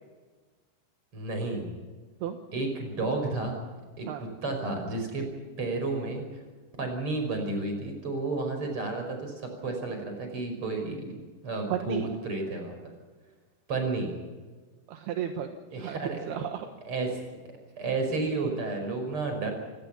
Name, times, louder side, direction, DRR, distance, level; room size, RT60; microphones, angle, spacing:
voice 1, 1.1-1.7 2.5-3.7 4.0-5.3 5.6-6.2 6.8-11.1 11.4-12.8 13.7-14.1 15.7-16.4 16.8-17.2 17.8-19.5, right 3 dB, 30° right, 4 dB, 6.0 m, -31 dB
voice 2, 11.7-12.1 14.9-16.7, right 9 dB, 75° right, 5 dB, 3.2 m, -34 dB
27.0 x 18.5 x 5.9 m, 1.3 s
omnidirectional pair, 4.7 m